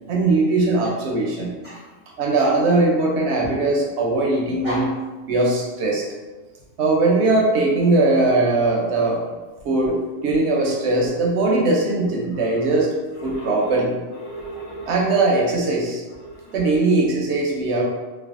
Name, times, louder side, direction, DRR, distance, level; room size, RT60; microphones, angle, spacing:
voice 1, 0.1-1.6 2.2-4.9 5.3-6.0 6.8-9.2 9.6-12.9 13.2-14.0 14.9-16.0 16.5-17.8, right 2 dB, 70° right, -2 dB, 0.8 m, -20 dB
voice 2, 13.1-13.5 14.2-15.0 16.2-16.6, equal, 45° left, -9 dB, 0.5 m, -34 dB
3.2 x 2.2 x 2.4 m, 1.3 s
omnidirectional pair, 1.3 m